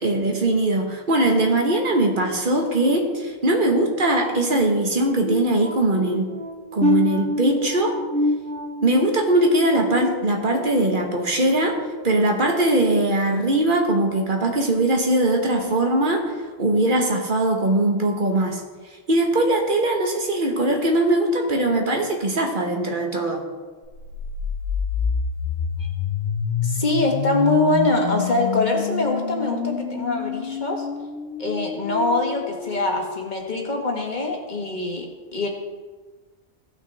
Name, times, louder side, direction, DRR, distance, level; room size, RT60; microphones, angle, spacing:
voice 1, 0.0-6.3 6.7-8.0 8.8-11.8 12.0-18.6 19.1-23.4, right 1 dB, 50° right, 2 dB, 1.4 m, -21 dB
sound 1, 5.2-10.9 11.3-11.6 12.1-12.3, left 1 dB, 5° left, 0.7 m, -27 dB
sound 2, 23.9-33.9, left 7 dB, 80° left, 0.9 m, -28 dB
voice 2, 26.6-30.9 31.4-35.1 35.3-35.5, left 2 dB, 45° left, 1 dB, 1.5 m, -23 dB
16.0 x 5.8 x 3.4 m, 1.4 s
omnidirectional pair, 1.1 m